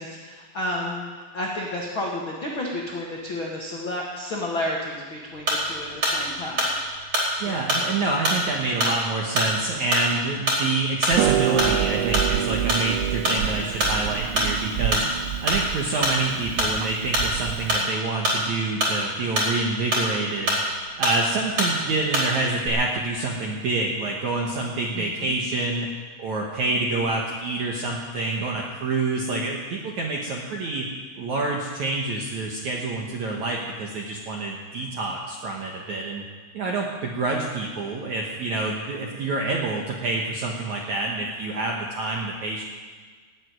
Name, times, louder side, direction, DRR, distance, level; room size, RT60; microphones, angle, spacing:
voice 1, 0.0-6.7 7.3-7.6 24.9-25.4, left 1 dB, 75° left, -2 dB, 1.1 m, -31 dB
sound 1, 5.5-5.7 6.0-6.2 6.6-7.3 7.7-7.9 8.2-8.4 8.8-9.0 9.4-9.5 9.9-10.2 10.5-10.6 11.0-11.3 11.6-11.8 12.1-12.3 12.7-12.9 13.2-13.4 13.8-14.0 14.4-14.5 14.9-15.1 15.5-15.7 16.0-16.2 16.6-16.8 17.1-17.3 17.7-17.9 18.2-19.0 19.4-19.6 19.9-20.1 20.5-20.7 21.0-21.2 21.6-21.8 22.1-22.3 22.6-22.7, right 1 dB, 30° right, 4.9 m, -23 dB
voice 2, 7.4-15.1 15.4-20.6 21.0-25.9 26.2-30.9 31.2-36.2 36.5-42.6, right 3 dB, 65° right, -1 dB, 1.8 m, -27 dB
Harp, 11.1-17.8, right 11 dB, 90° right, 3.1 m, -27 dB
18.0 x 8.1 x 9.2 m, 1.5 s
omnidirectional pair, 5.4 m